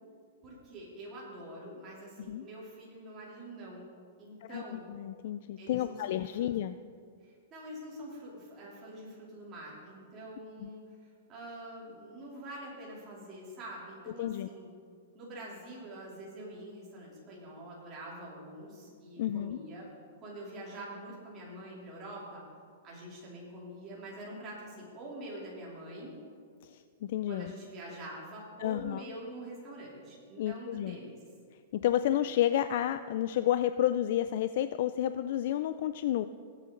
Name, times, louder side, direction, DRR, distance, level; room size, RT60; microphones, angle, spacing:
voice 1, 0.4-3.9 4.2-4.9 5.6-6.5 7.2-14.7 15.1-19.9 20.2-22.4 22.8-26.1 27.3-31.2, right 1 dB, 20° right, -5 dB, 3.2 m, -45 dB
voice 2, 4.4-6.8 10.6-10.7 14.2-14.5 19.2-19.6 26.6-27.5 28.6-29.0 30.4-31.0 31.7-36.2, left 12 dB, 50° left, 11 dB, 0.3 m, -31 dB
18.5 x 8.5 x 3.8 m, 2.1 s
supercardioid pair, 165°, 0 cm